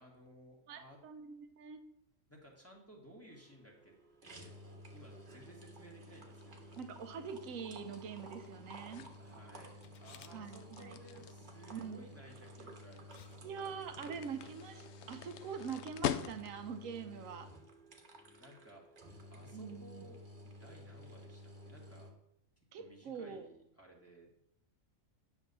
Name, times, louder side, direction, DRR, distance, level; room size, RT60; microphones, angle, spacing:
voice 1, 0.0-1.0 2.3-3.9 4.2-6.9 9.2-13.5 18.1-18.8 19.3-20.2 20.4-22.1 22.7-24.4, right 1 dB, 10° left, -2 dB, 1.7 m, -58 dB
voice 2, 0.7-1.8 6.8-9.1 10.3-10.9 11.7-12.0 13.4-17.5 19.5-20.0 22.7-23.5, right 6 dB, 80° right, 8 dB, 1.2 m, -44 dB
sound 1, 3.3-22.1, equal, 40° right, 1.3 m, -53 dB
sound 2, 6.4-16.8, left 10 dB, 65° left, 0.8 m, -45 dB
Camera, 9.8-10.4 12.4-12.6 13.1-13.4 13.7-13.8, left 9 dB, 85° left, 0.4 m, -58 dB
10.0 x 3.5 x 6.8 m, 0.77 s
omnidirectional pair, 1.4 m